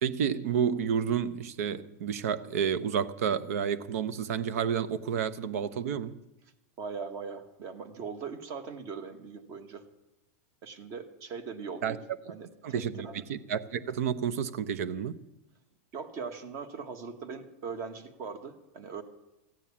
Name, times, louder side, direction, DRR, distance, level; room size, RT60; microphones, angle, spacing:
voice 1, 0.0-6.1 11.8-12.0 12.6-15.1, right 7 dB, 70° right, 0.9 m, -30 dB
voice 2, 6.8-9.8 10.6-12.0 12.3-13.2 15.9-19.0, right 5 dB, 35° right, 1.4 m, -40 dB
15.0 x 9.1 x 8.5 m
supercardioid pair, 160°, 8 cm